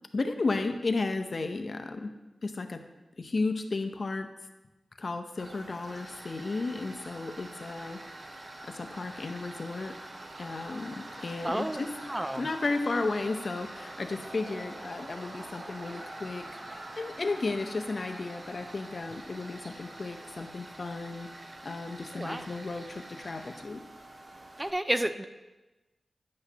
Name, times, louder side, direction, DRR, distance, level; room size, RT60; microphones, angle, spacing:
voice 1, 0.1-2.1 2.4-2.8 3.2-4.3 5.0-8.0 8.3-9.9 10.4-11.9 12.4-21.3 21.6-23.8, left 3 dB, 50° left, 7 dB, 0.6 m, -34 dB
Tools, 5.4-24.7, right 1 dB, 40° right, 0.8 m, -45 dB
voice 2, 11.4-11.8 12.1-12.5 22.1-22.5 24.6-25.2, right 1 dB, 15° right, 10 dB, 0.4 m, -31 dB
9.5 x 8.0 x 2.9 m, 1.1 s
wide cardioid pair, 70°, 0 cm